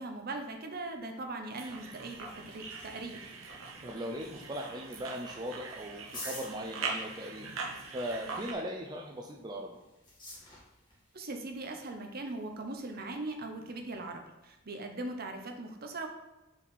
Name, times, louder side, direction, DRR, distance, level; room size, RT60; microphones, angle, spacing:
voice 1, 0.0-3.3 11.1-16.1, right 2 dB, 50° right, 4 dB, 0.8 m, -40 dB
sound 1, 1.5-8.5, right 4 dB, 80° right, 1.1 m, -42 dB
sound 2, 2.0-14.6, left 2 dB, 25° left, 1.8 m, -53 dB
voice 2, 3.8-7.5 7.9-9.8, equal, 20° right, 0 dB, 0.5 m, -39 dB
4.9 x 4.2 x 5.4 m, 1.0 s
head